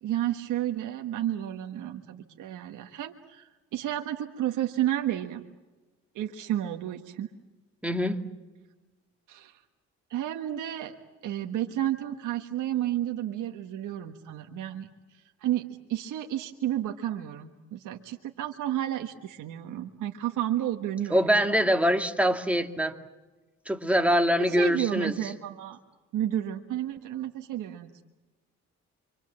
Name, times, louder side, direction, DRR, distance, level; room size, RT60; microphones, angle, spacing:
voice 1, 0.0-5.4 6.1-7.3 9.3-9.6 10.1-10.9 11.2-14.9 15.1-21.2 24.4-25.8 26.1-28.0, right 12 dB, 80° right, 4 dB, 1.5 m, -31 dB
voice 2, 7.8-8.2 21.1-23.0 23.7-25.3, equal, 5° right, 5 dB, 2.4 m, -24 dB
28.5 x 25.0 x 7.5 m, 1.2 s
cardioid pair, 90°, 30 cm